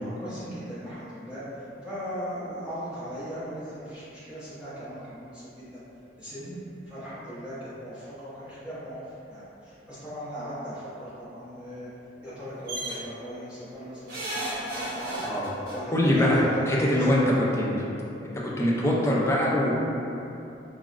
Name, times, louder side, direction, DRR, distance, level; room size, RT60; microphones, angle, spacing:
voice 1, 0.0-5.8 6.2-6.6 6.8-11.9 12.2-17.2, equal, 5° right, -14 dB, 0.9 m, -38 dB
sound 1, 12.7-13.0 14.1-15.8 17.0-17.1 17.3-17.4, right 1 dB, 55° right, 0.5 m, -33 dB
voice 2, 15.9-16.4 16.7-17.2 17.5-17.7 18.6-19.7, left 1 dB, 15° left, -5 dB, 0.4 m, -23 dB
3.5 x 2.0 x 2.4 m, 2.8 s
head